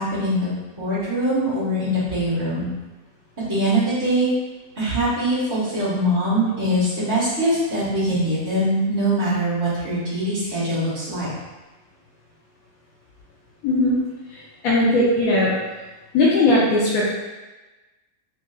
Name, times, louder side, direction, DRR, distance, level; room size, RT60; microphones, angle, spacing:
voice 1, 0.0-2.7 3.4-4.3 4.7-11.3, right 1 dB, 15° right, -12 dB, 1.2 m, -22 dB
voice 2, 13.6-14.0 14.3-15.5 16.1-17.1, left 2 dB, 85° left, -6 dB, 1.1 m, -18 dB
5.3 x 2.4 x 2.3 m, 1.1 s
omnidirectional pair, 1.5 m